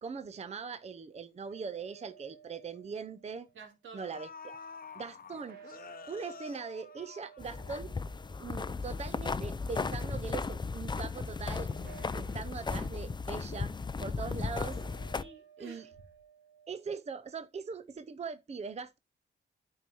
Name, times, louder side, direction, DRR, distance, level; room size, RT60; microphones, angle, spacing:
voice 1, 0.0-3.5 3.9-4.6 4.9-7.9 8.4-13.7 14.0-14.8 15.6-15.8 16.7-19.0, right 5 dB, 35° right, 0.7 m, -41 dB
sound 1, 1.5-3.5 5.3-9.0 9.5-10.5 11.7-12.8 14.3-17.0, right 8 dB, 55° right, 2.7 m, -56 dB
sound 2, 1.8-1.9 2.3-2.5 3.5-3.6 4.0-7.9 8.2-8.3, left 6 dB, 50° left, 0.8 m, -49 dB
voice 2, 3.5-4.2 14.2-14.4 15.1-15.9, right 4 dB, 85° right, 3.0 m, -51 dB
sound 3, 7.4-15.2, left 4 dB, 25° left, 0.5 m, -36 dB
9.6 x 4.7 x 4.4 m
cardioid pair, 90°, 19 cm